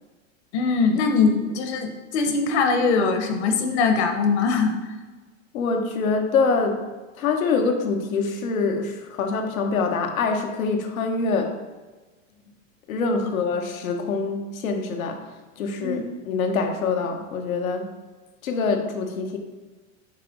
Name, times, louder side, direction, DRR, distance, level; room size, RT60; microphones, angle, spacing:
voice 1, 0.5-4.7 15.8-16.0, left 4 dB, 55° left, 5 dB, 1.1 m, -22 dB
voice 2, 5.5-6.9 7.2-11.5 12.9-15.2 15.6-17.9 18.4-19.4, left 4 dB, 90° left, 4 dB, 1.1 m, -25 dB
7.4 x 3.0 x 5.2 m, 1.3 s
supercardioid pair, 150°, 40 cm